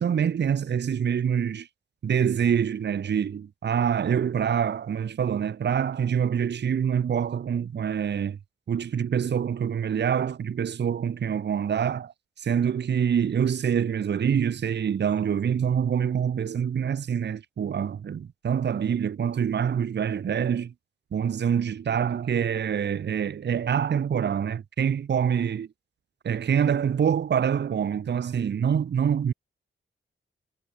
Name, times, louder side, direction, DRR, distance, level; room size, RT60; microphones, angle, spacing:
voice 1, 0.0-1.7 2.0-8.4 8.7-20.7 21.1-25.7 26.2-29.3, right 8 dB, 55° right, 0.7 m, -25 dB
wide cardioid pair, 100°, 21 cm